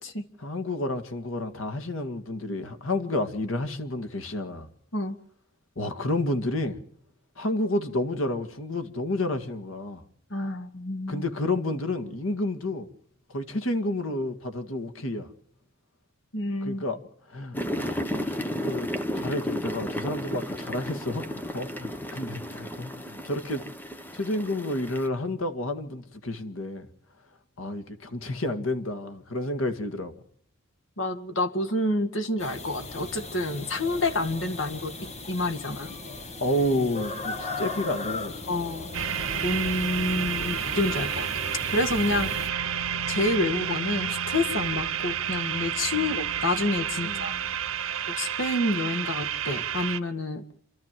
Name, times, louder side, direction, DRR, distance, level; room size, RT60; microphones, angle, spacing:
voice 1, 0.4-4.7 5.8-6.8 7.4-10.0 11.1-12.9 13.3-15.3 16.6-17.0 17.3-23.7 24.1-26.9 27.6-30.1 36.1-38.3 42.1-42.3 45.9-46.1 47.0-47.7, left 1 dB, 80° left, 2.0 m, -30 dB
voice 2, 10.3-11.2 16.3-16.8 31.0-34.9 35.3-35.9 38.5-38.9 39.4-41.3 41.7-42.3 43.1-47.4 48.1-50.4, left 2 dB, 65° left, 2.0 m, -28 dB
sound 1, 17.5-25.1, equal, 10° left, 1.1 m, -33 dB
sound 2, 32.4-42.5, left 3 dB, 35° left, 1.8 m, -38 dB
sound 3, 38.9-50.0, right 8 dB, 90° right, 0.9 m, -30 dB
28.0 x 13.0 x 7.6 m
head